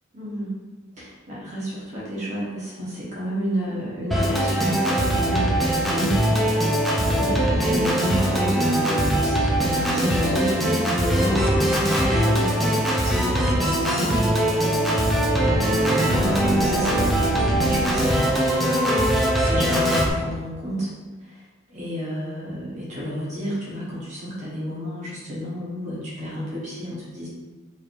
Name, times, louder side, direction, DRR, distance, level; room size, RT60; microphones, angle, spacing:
voice 1, 0.1-0.6 1.0-6.2 6.5-6.6 7.0-14.3 15.3-18.4 19.4-20.9 21.7-27.3, equal, 35° right, -8 dB, 1.2 m, -30 dB
Organ, 4.1-20.1, right 1 dB, ahead, 0.5 m, -21 dB
4.7 x 3.2 x 2.5 m, 1.3 s
head